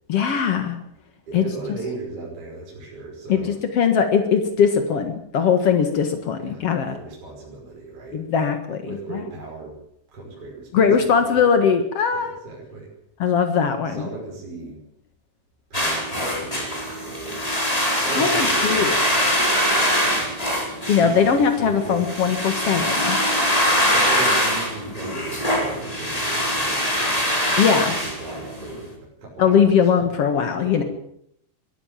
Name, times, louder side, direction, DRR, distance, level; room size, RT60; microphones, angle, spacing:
voice 1, 0.1-0.8 1.3-1.4 3.3-3.4 3.7-6.9 8.1-8.8 10.7-12.3 13.2-14.1 17.9-18.9 20.9-23.2 27.6-27.9 29.4-30.8, left 7 dB, 75° left, 7 dB, 1.3 m, -20 dB
voice 2, 1.3-3.5 6.4-6.6 6.9-8.3 8.8-9.8 10.1-11.4 12.1-12.9 13.8-14.8 15.7-17.5 18.0-19.3 19.7-20.3 21.0-22.3 22.7-22.8 23.9-27.2 27.9-30.1 30.6-30.9, right 3 dB, 30° right, -3 dB, 6.4 m, -37 dB
sound 1, 15.7-28.8, equal, 10° left, 4.0 m, -23 dB
23.0 x 13.5 x 9.0 m, 0.73 s
omnidirectional pair, 5.5 m